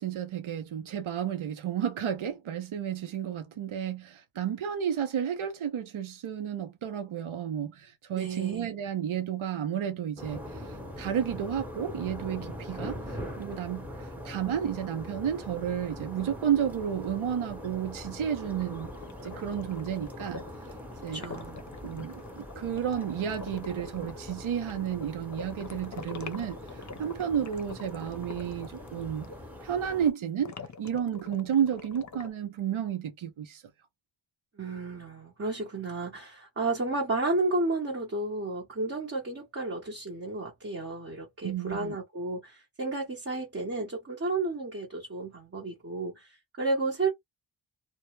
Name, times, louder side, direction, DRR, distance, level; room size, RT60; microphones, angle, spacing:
voice 1, 0.0-18.9 19.2-20.4 21.0-21.2 21.8-26.6 27.0-29.3 29.6-30.5 30.8-33.6 41.4-42.0, right 9 dB, 80° right, 0.7 m, -32 dB
voice 2, 8.2-8.7 21.1-21.6 34.6-47.1, right 2 dB, 30° right, 0.8 m, -32 dB
sound 1, 10.2-30.1, equal, 5° right, 0.9 m, -42 dB
sound 2, 18.6-29.4 30.4-32.3, left 5 dB, 40° left, 0.6 m, -45 dB
2.1 x 2.0 x 3.0 m
wide cardioid pair, 55°, 47 cm